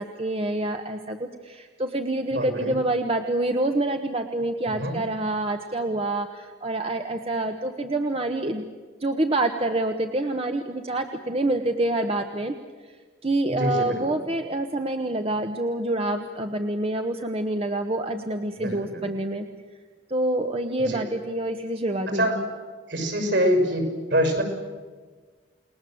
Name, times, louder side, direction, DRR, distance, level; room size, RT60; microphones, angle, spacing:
voice 1, 0.0-8.6 9.0-12.6 13.2-19.5 20.1-22.5, right 2 dB, 30° right, 6 dB, 1.1 m, -27 dB
voice 2, 2.3-2.8 4.7-5.0 13.5-14.0 18.6-18.8 20.9-21.0 22.1-22.4 22.9-23.9 24.1-24.4, equal, 65° right, 5 dB, 6.3 m, -24 dB
29.5 x 20.0 x 7.8 m, 1.5 s
head